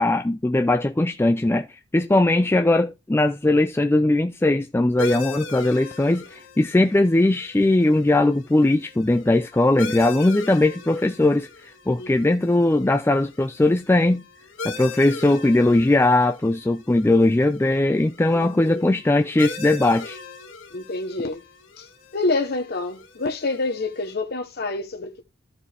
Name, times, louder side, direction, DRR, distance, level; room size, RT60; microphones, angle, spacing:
voice 1, 0.0-1.7 1.9-14.2 14.6-20.2, left 2 dB, 10° left, 0.4 m, -19 dB
sound 1, 5.0-24.1, left 4 dB, 85° left, 1.8 m, -40 dB
voice 2, 12.0-12.4 18.3-18.8 20.7-21.4 21.8-21.9 22.1-25.2, left 3 dB, 55° left, 1.0 m, -27 dB
13.5 x 4.6 x 3.4 m
head